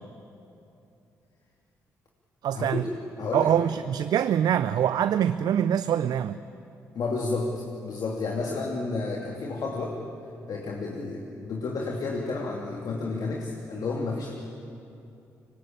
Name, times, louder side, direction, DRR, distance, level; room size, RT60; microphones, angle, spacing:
voice 1, 2.4-2.9 3.3-6.4, right 9 dB, 65° right, 12 dB, 0.6 m, -24 dB
voice 2, 3.2-3.5 6.9-10.0 10.5-14.3, left 3 dB, 60° left, -1 dB, 2.6 m, -31 dB
24.5 x 19.5 x 8.8 m, 2.7 s
hypercardioid pair, 45°, 7 cm